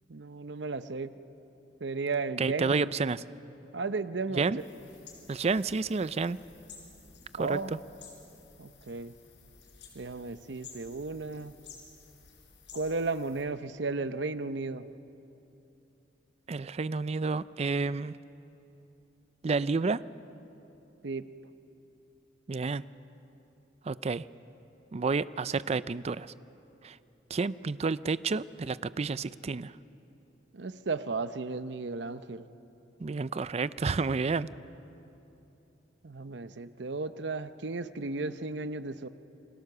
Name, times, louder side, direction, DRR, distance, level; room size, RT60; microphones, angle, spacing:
voice 1, 0.1-1.2 1.8-2.8 3.7-4.5 7.4-7.8 8.6-9.1 9.9-11.5 12.7-14.9 21.0-21.3 30.5-32.5 36.0-39.1, right 3 dB, 70° right, 12 dB, 0.8 m, -34 dB
voice 2, 2.4-3.2 4.3-4.6 5.3-6.4 7.3-7.6 16.5-18.2 19.4-20.0 22.5-22.8 23.8-24.3 24.9-26.3 26.8-27.0 27.3-29.7 33.0-34.5, right 4 dB, 35° right, 16 dB, 0.4 m, -30 dB
sound 1, 4.6-13.4, left 5 dB, 70° left, 5.0 m, -53 dB
28.5 x 21.0 x 6.8 m, 3.0 s
head